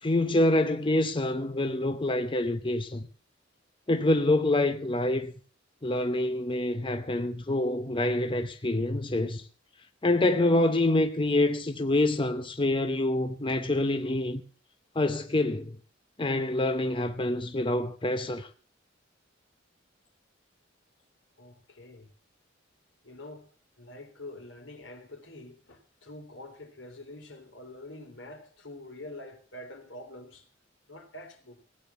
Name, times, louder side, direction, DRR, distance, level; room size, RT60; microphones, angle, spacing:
voice 1, 0.0-3.0 3.9-5.3 5.8-9.4 10.0-14.4 14.9-15.8 16.2-18.5, left 1 dB, 25° left, 0.8 m, -26 dB
voice 2, 21.4-22.1 23.0-23.5 23.8-30.5 30.9-31.6, left 1 dB, 80° left, 3.6 m, -46 dB
17.0 x 8.9 x 7.0 m
head